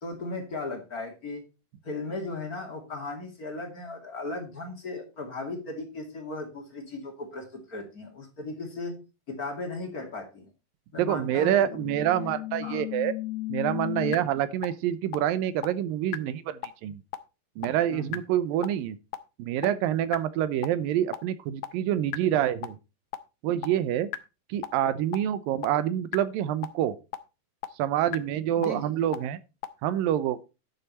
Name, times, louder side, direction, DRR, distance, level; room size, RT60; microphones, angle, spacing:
voice 1, 0.0-1.4 1.8-9.0 9.3-10.5 10.9-11.9 12.2-12.3 12.6-12.8 14.0-14.3 17.9-18.2 28.6-28.9, left 3 dB, 30° left, 2.3 m, -37 dB
voice 2, 11.0-13.1 13.5-17.0 17.6-19.0 19.4-22.8 23.4-24.1 24.5-27.0 27.8-29.4 29.8-30.4, right 11 dB, 80° right, 2.5 m, -27 dB
sound 1, 11.7-14.2 14.6-14.7 15.1-15.2 15.6-15.7 16.1-16.2 16.6-16.7 17.1-17.2 17.6-17.7 18.1-18.2 18.6-18.7 19.1-19.2 19.6-19.7 20.1-20.2 20.6-20.7 21.1-21.2 21.6-21.7 22.1-22.2 22.6-22.7 23.1-23.2 23.6-23.7 24.1-24.2 24.6-24.7 25.1-25.2 25.6-25.7 26.1-26.2 26.6-26.7 27.1-27.2 27.6-27.7 28.1-28.2 28.6-28.7 29.1-29.2 29.6-29.7, left 15 dB, 75° left, 1.8 m, -33 dB
11.5 x 7.1 x 4.2 m
omnidirectional pair, 4.1 m